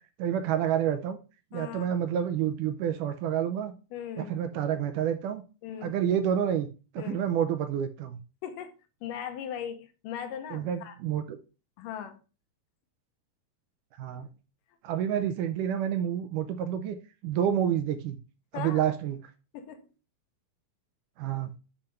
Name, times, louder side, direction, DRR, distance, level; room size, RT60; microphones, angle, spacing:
voice 1, 0.2-1.2 1.5-3.7 4.2-5.4 5.8-6.7 6.9-8.2 10.5-11.4 14.0-14.3 14.8-17.0 17.2-18.2 18.5-19.2 21.2-21.5, right 9 dB, 80° right, 2.1 m, -28 dB
voice 2, 1.5-1.9 3.9-4.3 5.6-6.0 7.0-7.2 8.4-8.7 9.0-10.9 11.8-12.2 18.5-18.8 19.5-19.9, left 9 dB, 75° left, 2.3 m, -38 dB
7.8 x 4.3 x 5.1 m
omnidirectional pair, 4.1 m